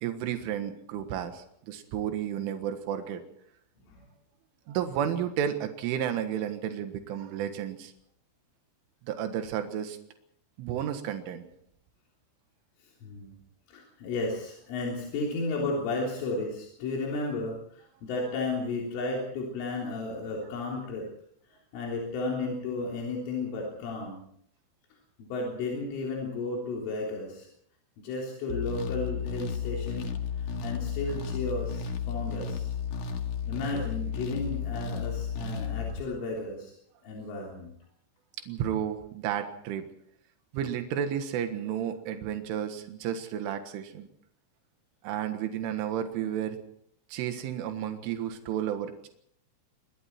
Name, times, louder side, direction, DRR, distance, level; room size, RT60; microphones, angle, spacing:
voice 1, 0.0-3.2 4.7-7.9 9.0-10.0 10.6-11.5 38.5-39.9 40.5-44.1 45.0-46.6 47.1-49.1, right 9 dB, 85° right, 7 dB, 4.1 m, -32 dB
voice 2, 13.0-13.3 13.7-21.1 21.7-24.2 25.2-27.5 28.0-30.1 30.4-32.7 33.5-36.7 37.0-37.7, left 3 dB, 85° left, -2 dB, 6.0 m, -33 dB
sound 1, 28.5-36.0, left 6 dB, 55° left, 2.6 m, -33 dB
27.0 x 21.0 x 4.5 m, 0.68 s
omnidirectional pair, 5.5 m